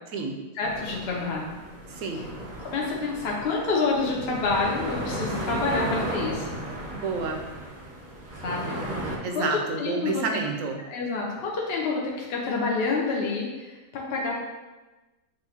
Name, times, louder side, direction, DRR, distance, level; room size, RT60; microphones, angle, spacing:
voice 1, 0.5-1.6 2.7-6.5 8.4-8.8 9.3-10.2 10.9-14.3, left 3 dB, 55° left, -3 dB, 0.8 m, -28 dB
sound 1, 0.6-9.2, right 1 dB, 45° right, 0.7 m, -35 dB
voice 2, 1.9-2.3 6.9-7.4 9.2-10.8, right 4 dB, 75° right, 2 dB, 1.0 m, -29 dB
6.5 x 2.6 x 2.8 m, 1.1 s
omnidirectional pair, 1.5 m